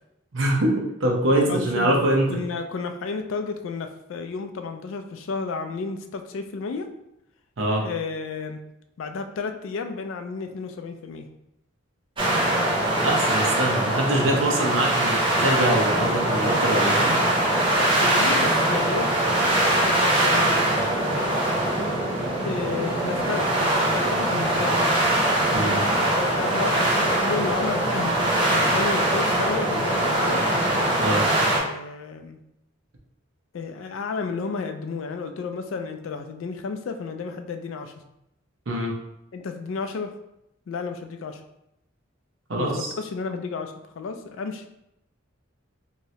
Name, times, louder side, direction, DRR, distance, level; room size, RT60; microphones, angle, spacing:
voice 1, 0.3-0.7 1.0-2.3 7.6-7.9 13.0-17.2 25.5-25.8 31.0-31.2 38.7-38.9 42.5-42.9, right 1 dB, 65° right, -1 dB, 0.7 m, -23 dB
voice 2, 1.5-2.0 2.3-6.9 7.8-8.6 9.0-11.3 18.0-20.6 22.4-23.5 23.9-24.8 26.2-30.4 31.6-32.4 33.5-37.9 39.3-40.1 40.7-41.4 42.6-44.7, left 4 dB, 65° left, 6 dB, 0.4 m, -32 dB
sound 1, 12.2-31.6, right 1 dB, 25° right, 0.7 m, -22 dB
3.1 x 2.8 x 2.7 m, 0.83 s
head